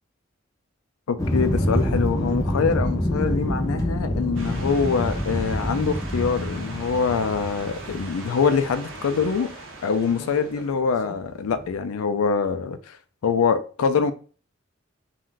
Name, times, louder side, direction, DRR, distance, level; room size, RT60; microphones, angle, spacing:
voice 1, 1.1-9.5 9.8-13.0 13.2-14.1, left 5 dB, 85° left, 0.4 m, -24 dB
sound 1, 1.2-9.5 9.9-11.1 11.5-11.7, equal, 15° left, 0.4 m, -27 dB
sound 2, 4.3-10.7, right 3 dB, 70° right, 0.6 m, -40 dB
2.5 x 2.2 x 3.6 m
head